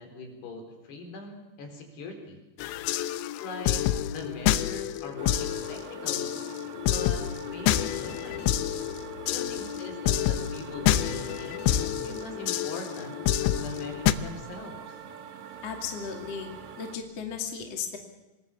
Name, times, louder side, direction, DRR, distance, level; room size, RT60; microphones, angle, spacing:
voice 1, 0.0-2.4 3.4-6.4 6.8-7.2 7.5-8.5 9.3-11.6 12.0-15.0, left 3 dB, 70° left, 4 dB, 6.0 m, -41 dB
sound 1, 2.6-14.1, left 12 dB, 90° left, 3.2 m, -28 dB
sound 2, 5.2-17.0, right 7 dB, 70° right, 1.4 m, -45 dB
voice 2, 15.6-16.5 16.8-18.0, left 7 dB, 40° left, 3 dB, 3.1 m, -36 dB
26.5 x 20.5 x 7.2 m, 1.0 s
omnidirectional pair, 5.0 m